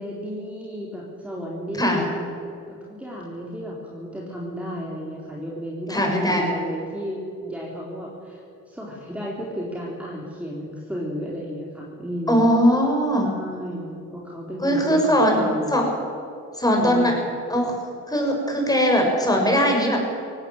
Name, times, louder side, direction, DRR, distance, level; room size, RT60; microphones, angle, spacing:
voice 1, 0.0-2.2 2.7-12.5 13.2-15.9 16.8-17.3, equal, 5° right, -4 dB, 4.0 m, -33 dB
voice 2, 5.9-6.5 12.3-13.3 14.6-15.4 15.7-15.8 16.6-17.1 17.5-17.8 18.1-20.0, equal, 10° left, 1 dB, 6.5 m, -20 dB
18.5 x 17.0 x 9.0 m, 2.6 s
cardioid pair, 90°, 30 cm